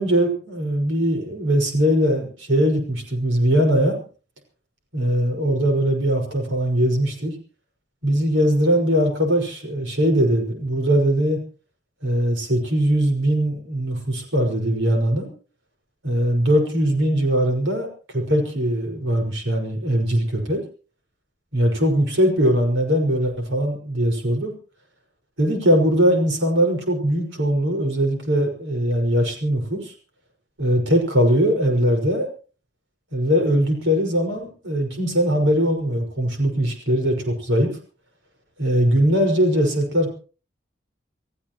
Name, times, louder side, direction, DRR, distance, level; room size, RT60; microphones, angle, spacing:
voice 1, 0.0-4.0 4.9-7.3 8.0-11.4 12.0-15.3 16.0-17.9 18.1-20.6 21.5-24.5 25.4-29.9 30.6-32.3 33.1-37.7 38.6-40.1, equal, 90° right, 3 dB, 5.7 m, -20 dB
28.0 x 15.0 x 3.1 m, 0.37 s
head